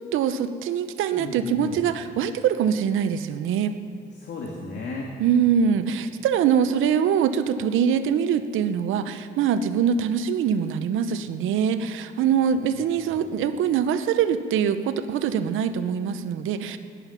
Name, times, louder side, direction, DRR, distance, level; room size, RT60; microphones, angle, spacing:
voice 1, 0.1-3.7 5.2-16.8, right 8 dB, 85° right, 10 dB, 0.8 m, -23 dB
voice 2, 1.2-1.8 4.1-5.2 12.7-13.2, left 3 dB, 60° left, -1 dB, 2.0 m, -36 dB
17.5 x 11.0 x 5.7 m, 2.6 s
cardioid pair, 90°, 20 cm